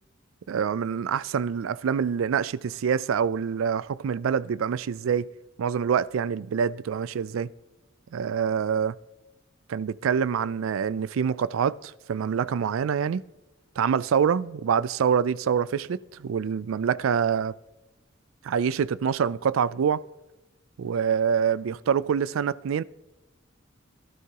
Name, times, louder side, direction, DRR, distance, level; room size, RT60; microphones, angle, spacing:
voice 1, 0.5-5.3 5.6-7.5 8.1-9.0 9.7-13.2 13.8-17.5 18.4-20.0 20.8-22.8, right 7 dB, 90° right, 0.4 m, -26 dB
16.5 x 12.5 x 2.9 m
head